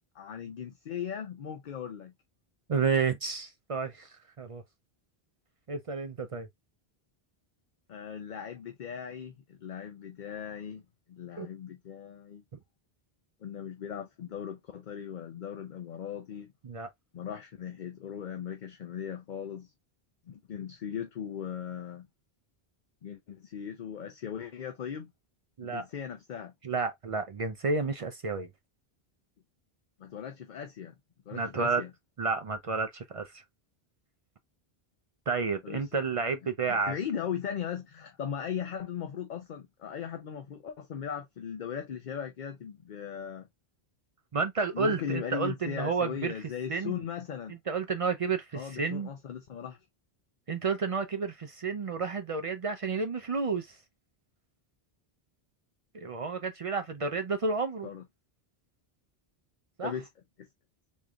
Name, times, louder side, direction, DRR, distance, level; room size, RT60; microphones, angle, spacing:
voice 1, 0.1-2.1 7.9-10.8 11.1-12.4 13.4-16.5 17.1-19.7 20.3-22.1 23.0-25.1 25.6-26.5 30.0-30.9 31.3-31.9 35.6-35.9 36.7-43.5 44.7-47.6 48.5-49.8 57.8-58.0 59.8-60.1 60.4-60.5, left 8 dB, 55° left, 0.7 m, -38 dB
voice 2, 2.7-4.1 4.4-4.6 5.7-6.5 11.4-11.5 16.6-16.9 25.6-25.8 26.6-28.5 31.3-31.8 32.2-33.4 35.3-36.9 44.3-46.3 46.7-47.0 47.5-49.1 50.5-53.8 55.9-57.9 59.8-59.9, right 4 dB, 50° right, 0.4 m, -31 dB
3.6 x 3.2 x 2.3 m
omnidirectional pair, 1.1 m